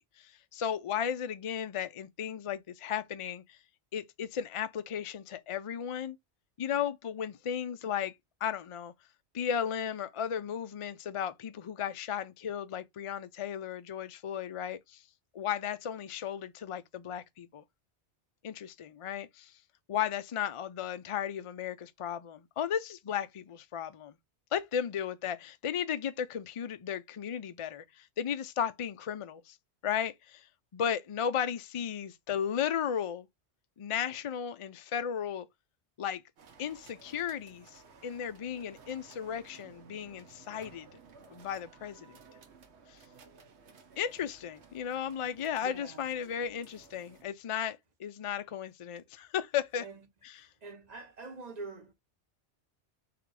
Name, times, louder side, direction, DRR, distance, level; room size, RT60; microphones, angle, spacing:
voice 1, 0.2-3.6 3.9-6.2 6.6-8.1 8.4-8.9 9.3-15.0 15.3-17.6 18.4-19.5 19.9-24.1 24.5-29.6 29.8-30.4 30.7-33.3 33.8-35.5 36.0-36.2 36.6-40.9 41.3-42.2 42.9-43.0 44.0-49.9 50.2-50.5, left 8 dB, 55° left, 0.3 m, -35 dB
sound 1, 36.4-47.2, right 5 dB, 80° right, 1.2 m, -57 dB
voice 2, 45.6-46.0 49.8-50.0 50.6-51.9, right 3 dB, 40° right, 1.0 m, -44 dB
3.9 x 2.8 x 4.6 m
omnidirectional pair, 1.1 m